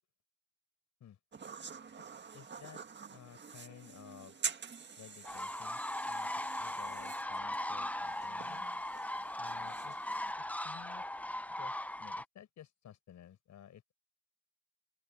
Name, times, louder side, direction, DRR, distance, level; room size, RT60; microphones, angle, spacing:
sound 1, 1.3-10.3, right 6 dB, 35° right, 1.7 m, -47 dB
voice 1, 2.3-2.8 3.1-4.4 5.0-6.3 6.6-8.7 9.4-10.0 10.4-11.0 11.6-13.9, left 10 dB, 65° left, 5.6 m, -55 dB
sound 2, 5.2-12.2, left 1 dB, 5° left, 0.8 m, -39 dB
open air
cardioid pair, 90°, 30 cm